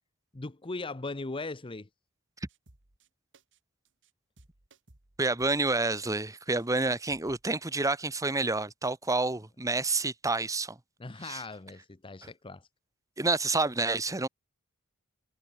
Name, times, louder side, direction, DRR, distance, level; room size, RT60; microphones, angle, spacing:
voice 1, 0.3-1.9 11.0-12.7, left 3 dB, 25° left, 0.7 m, -39 dB
sound 1, 2.5-3.1 3.3-3.6 3.8-4.1 4.4-6.2 6.6-6.7 7.1-7.4, right 2 dB, 55° right, 2.4 m, -60 dB
voice 2, 5.2-10.8 11.2-11.4 13.2-14.3, right 3 dB, 15° right, 1.1 m, -29 dB
head